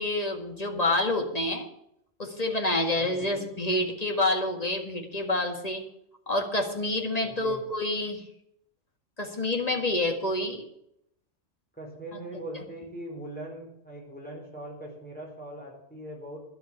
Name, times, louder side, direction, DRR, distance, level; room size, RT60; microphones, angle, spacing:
voice 1, 0.0-1.7 2.2-5.8 6.3-8.2 9.2-10.7, left 2 dB, 30° left, 3 dB, 2.0 m, -28 dB
voice 2, 3.0-3.4 7.2-7.6 11.8-16.4, right 1 dB, 5° left, -2 dB, 4.3 m, -41 dB
11.0 x 8.1 x 8.6 m, 0.76 s
omnidirectional pair, 1.3 m